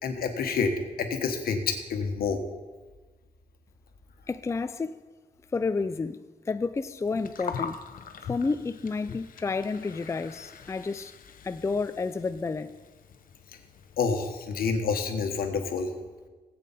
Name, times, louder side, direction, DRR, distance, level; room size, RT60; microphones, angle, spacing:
voice 1, 0.0-2.4 14.0-15.9, left 5 dB, 85° left, 1.3 m, -28 dB
voice 2, 4.3-5.0 5.5-7.8 8.3-11.1 11.4-12.8, left 4 dB, 20° left, 0.4 m, -30 dB
Gurgling, 7.0-14.3, left 6 dB, 70° left, 0.8 m, -43 dB
16.0 x 8.4 x 4.2 m
cardioid pair, 105°, 15 cm